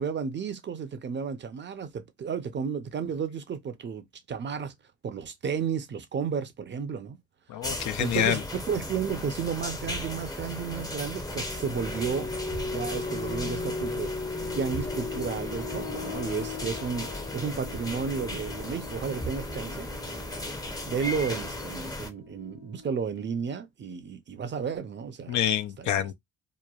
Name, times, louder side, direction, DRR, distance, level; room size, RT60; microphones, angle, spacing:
voice 1, 0.0-4.7 5.0-7.2 8.0-12.3 12.6-14.1 14.5-19.9 20.8-25.4 25.8-26.1, right 6 dB, 40° right, 0.5 m, -32 dB
voice 2, 7.5-8.4 25.3-26.1, left 11 dB, 70° left, 0.5 m, -27 dB
sound 1, 7.6-22.1, left 1 dB, 15° left, 0.6 m, -36 dB
sound 2, 10.8-23.4, left 3 dB, 50° left, 1.1 m, -38 dB
2.9 x 2.2 x 2.3 m
cardioid pair, 90°, 30 cm